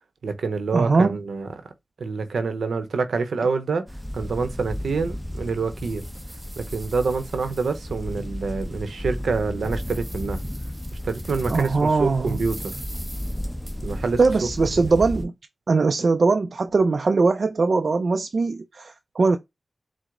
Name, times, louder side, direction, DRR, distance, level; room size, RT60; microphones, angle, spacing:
voice 1, 0.2-1.5 2.0-3.8 4.1-6.0 6.6-10.4 11.0-12.7 13.8-14.2 14.7-14.8, right 4 dB, 90° right, 0.7 m, -26 dB
voice 2, 0.7-1.2 11.5-12.4 14.2-15.3 15.7-19.4, right 4 dB, 70° right, 0.4 m, -21 dB
sound 1, 3.9-15.3, equal, 10° left, 0.8 m, -33 dB
sound 2, 4.1-4.2 4.7-4.8 5.4-8.2 8.6-8.7 9.2-11.9 12.3-14.2, right 1 dB, 25° right, 1.2 m, -45 dB
4.6 x 2.0 x 3.7 m
cardioid pair, 45°, 0 cm